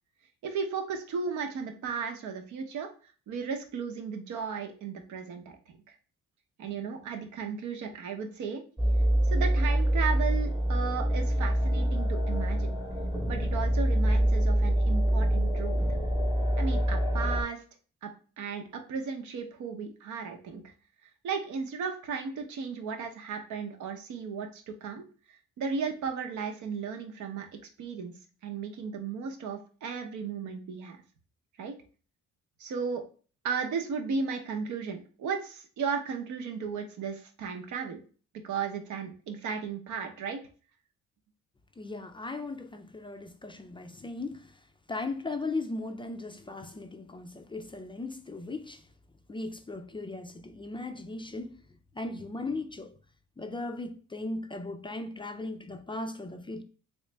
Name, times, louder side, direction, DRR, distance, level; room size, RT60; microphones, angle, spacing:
voice 1, 0.4-2.9 3.3-5.8 6.6-8.6 9.3-12.7 13.3-15.8 16.6-17.6 18.0-18.1 18.4-20.6 21.2-25.0 25.6-27.5 27.8-28.1 28.4-31.0 31.6-31.7 32.6-33.0 33.4-38.0 38.4-40.4, right 5 dB, 75° right, 0.8 m, -35 dB
sound 1, 8.8-17.4, right 1 dB, 15° right, 0.9 m, -26 dB
voice 2, 41.8-44.6 44.9-48.9 49.3-51.6 51.9-52.9 53.4-56.6, left 2 dB, 15° left, 0.4 m, -37 dB
3.1 x 3.0 x 3.2 m
cardioid pair, 90°, 30 cm